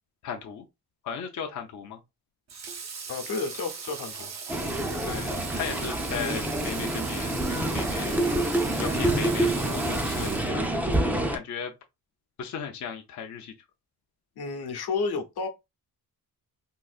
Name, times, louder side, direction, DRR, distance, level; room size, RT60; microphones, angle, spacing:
voice 1, 0.2-0.7 1.0-2.0 5.0-8.2 8.7-11.0 11.3-11.7 12.4-13.5, left 6 dB, 50° left, 0.5 m, -36 dB
Water / Water tap faucet, 2.5-11.0, right 5 dB, 45° right, 0.6 m, -39 dB
voice 2, 3.1-4.3 14.4-15.5, left 4 dB, 80° left, 0.9 m, -31 dB
sound 1, 4.5-11.4, right 1 dB, 5° right, 0.4 m, -27 dB
3.8 x 2.5 x 2.4 m
wide cardioid pair, 140°, 38 cm